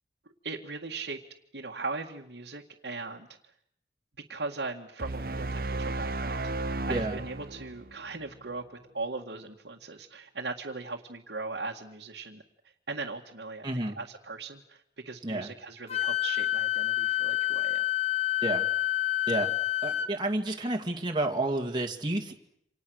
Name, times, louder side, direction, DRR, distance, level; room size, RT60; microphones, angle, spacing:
voice 1, 0.4-1.2 1.5-3.3 4.3-12.4 12.9-17.8, right 3 dB, 75° right, -1 dB, 2.0 m, -39 dB
sound 1, 5.0-8.3, right 2 dB, 55° right, 1.1 m, -34 dB
voice 2, 13.6-14.0 15.2-15.5 18.4-18.6 19.3-19.5 19.8-22.3, right 2 dB, 25° right, 1 dB, 2.2 m, -30 dB
Wind instrument woodwind instrument, 15.9-20.1, left 16 dB, 35° left, 1.5 m, -28 dB
28.5 x 27.0 x 6.5 m, 0.72 s
head